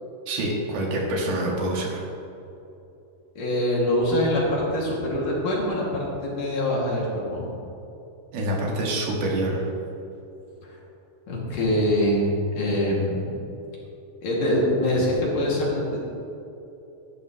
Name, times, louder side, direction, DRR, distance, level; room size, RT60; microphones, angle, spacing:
voice 1, 0.3-2.0 8.3-9.7, right 1 dB, 75° right, -2 dB, 3.6 m, -26 dB
voice 2, 3.4-7.5 11.3-13.5 14.2-16.0, left 1 dB, 60° left, -5 dB, 3.7 m, -24 dB
14.5 x 12.5 x 3.1 m, 2.9 s
omnidirectional pair, 4.5 m